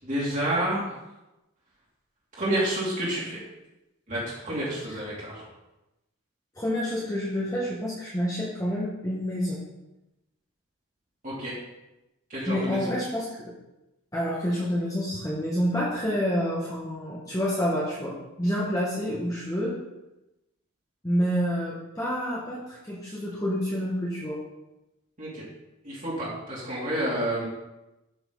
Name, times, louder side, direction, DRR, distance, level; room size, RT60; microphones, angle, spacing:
voice 1, 0.0-0.8 2.4-3.4 4.1-5.5 11.2-11.6 12.3-12.9 25.2-25.5 25.8-27.4, right 1 dB, 35° right, -8 dB, 2.8 m, -29 dB
voice 2, 6.5-9.6 12.5-13.5 14.1-19.7 21.0-24.4, equal, 15° left, -6 dB, 1.7 m, -28 dB
12.5 x 5.9 x 4.1 m, 0.98 s
head